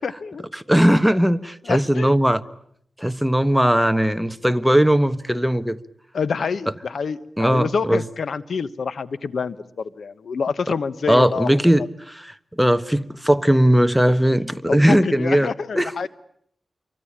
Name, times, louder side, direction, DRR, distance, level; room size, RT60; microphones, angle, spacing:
voice 1, 0.0-0.4 1.7-2.1 6.1-11.9 14.7-16.1, left 5 dB, 75° left, 1.2 m, -27 dB
voice 2, 0.7-2.4 3.0-5.8 7.4-8.0 11.1-15.5 15.7-16.1, equal, 5° right, 1.3 m, -18 dB
27.0 x 24.0 x 8.8 m
wide cardioid pair, 75°, 0 cm